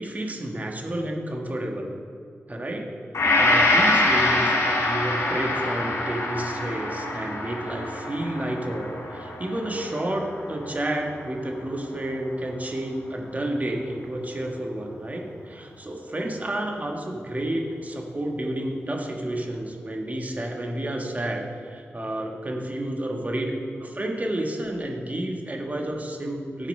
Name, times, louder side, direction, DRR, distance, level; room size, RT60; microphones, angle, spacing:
voice 1, 0.0-1.9 2.5-2.8 3.4-23.5 23.8-26.7, right 1 dB, 35° right, 1 dB, 1.5 m, -30 dB
Gong, 3.1-11.5 11.9-12.0, left 2 dB, 80° left, 1.6 m, -25 dB
8.8 x 7.3 x 5.4 m, 2.2 s
cardioid pair, 55°, 5 cm